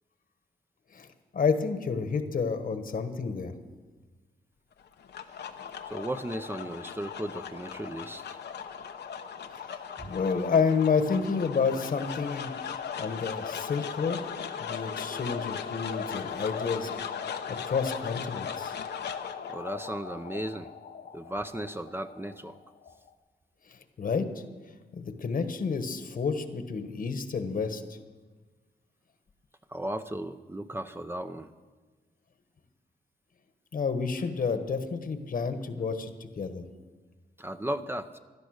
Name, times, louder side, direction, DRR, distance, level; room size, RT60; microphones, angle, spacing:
voice 1, 1.3-3.5 9.7-14.2 14.6-16.9 17.6-18.7 23.7-24.3 24.9-27.8 33.7-36.7, left 5 dB, 55° left, 9 dB, 1.3 m, -30 dB
sound 1, 4.8-23.1, left 7 dB, 90° left, 1.0 m, -38 dB
voice 2, 5.8-8.4 10.0-10.1 19.4-20.7 21.1-22.6 29.7-31.5 37.4-38.2, right 1 dB, 15° right, 8 dB, 0.6 m, -35 dB
16.5 x 12.0 x 6.5 m, 1.3 s
cardioid pair, 100°, 17 cm